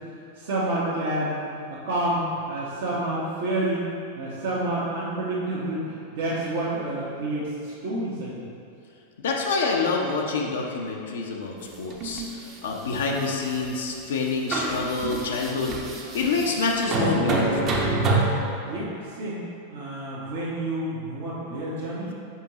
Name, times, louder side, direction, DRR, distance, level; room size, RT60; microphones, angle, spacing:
voice 1, 0.3-1.4 1.8-3.9 4.1-8.3 18.6-19.4 19.7-22.1, right 1 dB, 55° right, -9 dB, 1.1 m, -29 dB
voice 2, 9.2-12.2 12.6-15.8 16.1-17.8, left 4 dB, 60° left, -1 dB, 0.7 m, -27 dB
sound 1, 11.7-12.3 12.9-13.7 14.1-14.2 14.5-18.2, right 3 dB, 30° right, 0.9 m, -27 dB
7.0 x 5.3 x 2.9 m, 2.6 s
figure-of-eight pair, 90°, 0 cm